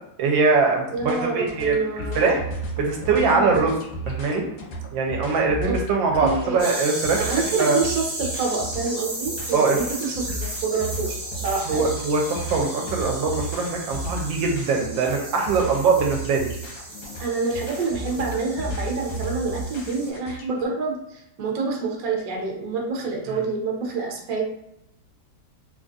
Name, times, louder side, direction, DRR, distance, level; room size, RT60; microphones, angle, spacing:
voice 1, 0.2-2.4 2.8-3.7 4.1-4.4 4.9-7.2 7.6-7.8 9.5-9.8 11.7-16.5 23.3-23.4, right 4 dB, 80° right, 1 dB, 1.3 m, -22 dB
voice 2, 0.9-2.3 3.3-3.7 5.6-5.7 6.2-6.6 7.2-11.9 17.2-24.4, right 4 dB, 60° right, 0 dB, 1.0 m, -27 dB
sound 1, 1.0-20.6, right 1 dB, 90° left, 1.6 m, -34 dB
sound 2, 6.6-20.1, right 1 dB, 40° right, 0.7 m, -35 dB
3.7 x 2.4 x 2.6 m, 0.82 s
omnidirectional pair, 2.1 m